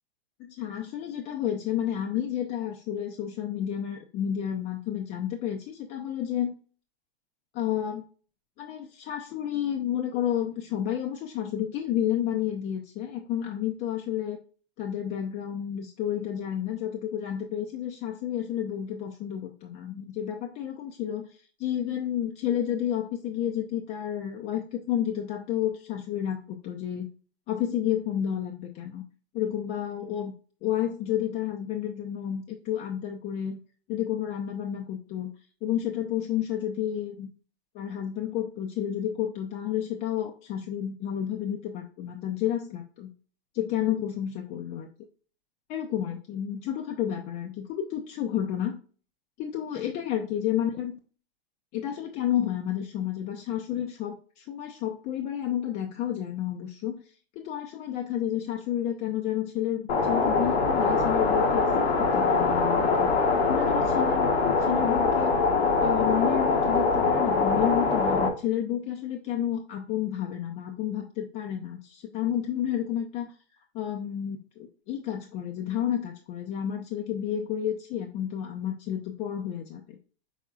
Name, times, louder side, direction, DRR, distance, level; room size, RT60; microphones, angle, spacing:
voice 1, 0.4-6.5 7.5-8.0 8.6-14.4 14.8-27.1 27.5-29.0 29.3-30.3 30.6-33.6 33.9-35.3 35.6-37.3 37.7-43.1 43.5-44.9 45.7-48.8 49.4-51.0 51.7-57.0 57.4-63.1 63.5-65.4 65.8-73.3 73.7-80.0, left 10 dB, 30° left, 2 dB, 0.5 m, -31 dB
sound 1, 59.9-68.3, left 4 dB, 80° left, 1.1 m, -23 dB
5.6 x 3.6 x 2.3 m, 0.40 s
hypercardioid pair, 120°, 31 cm